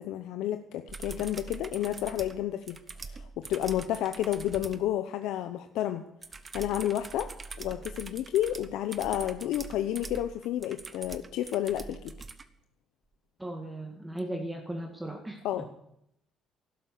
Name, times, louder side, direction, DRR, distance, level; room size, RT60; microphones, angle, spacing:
voice 1, 0.0-6.0 6.5-7.3 7.6-12.1 15.4-15.7, left 12 dB, 90° left, 8 dB, 0.8 m, -31 dB
sound 1, 0.9-4.9 6.2-12.5 14.2-14.3, right 4 dB, 25° right, 1.0 m, -43 dB
voice 2, 13.4-15.4, right 1 dB, 10° right, 3 dB, 1.9 m, -37 dB
12.0 x 11.5 x 8.1 m, 0.77 s
cardioid pair, 125°, 0 cm